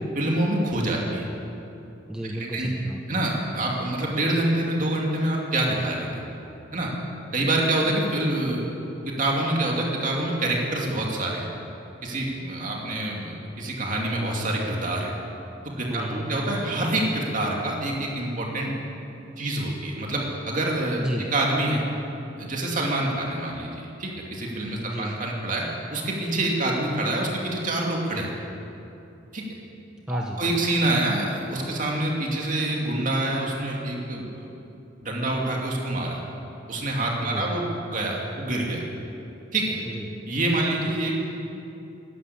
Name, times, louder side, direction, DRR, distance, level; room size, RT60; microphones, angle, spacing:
voice 1, 0.1-1.3 2.5-2.7 3.1-6.2 6.7-6.9 7.3-8.7 9.1-11.5 12.0-15.1 15.8-18.7 19.4-21.0 21.3-21.8 22.4-25.6 25.9-28.3 29.3-29.4 30.1-34.5 35.0-36.2 36.7-38.8 39.5-39.8 40.3-41.2, right 1 dB, 40° right, -2 dB, 2.5 m, -26 dB
voice 2, 2.1-3.2 15.9-16.4 21.0-21.3 24.8-25.2 30.1-30.6 37.2-37.6 39.9-40.2, equal, 5° right, 0 dB, 0.8 m, -32 dB
13.5 x 11.5 x 8.6 m, 2.8 s
head